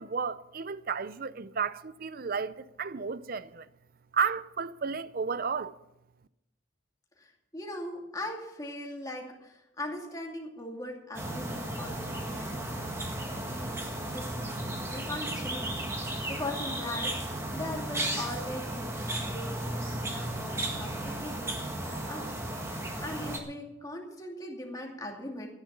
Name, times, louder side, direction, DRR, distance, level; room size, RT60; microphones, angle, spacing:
voice 1, 0.0-3.7 4.1-5.8, right 5 dB, 45° right, 0.6 m, -32 dB
voice 2, 7.2-13.0 13.3-25.5, left 1 dB, 20° left, 2.5 m, -40 dB
sound 1, 11.1-23.4, right 1 dB, 15° right, 1.6 m, -35 dB
14.0 x 10.5 x 6.8 m
head